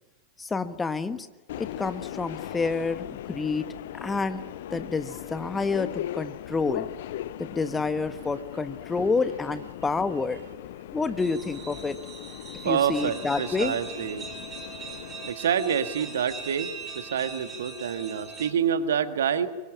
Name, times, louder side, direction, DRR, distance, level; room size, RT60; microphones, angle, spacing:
voice 1, 0.4-1.3 1.6-3.7 3.9-4.4 4.7-6.9 7.4-10.4 10.9-12.0 12.6-13.7, left 4 dB, 15° left, 11 dB, 1.4 m, -28 dB
Subway metro underground, 1.5-15.3, left 12 dB, 55° left, 0.9 m, -39 dB
sound 1, 11.2-18.5, right 5 dB, 20° right, 5.5 m, -40 dB
voice 2, 12.6-14.2 14.9-19.5, right 8 dB, 65° right, 10 dB, 1.7 m, -27 dB
24.5 x 24.0 x 9.9 m, 1.2 s
figure-of-eight pair, 90°, 0 cm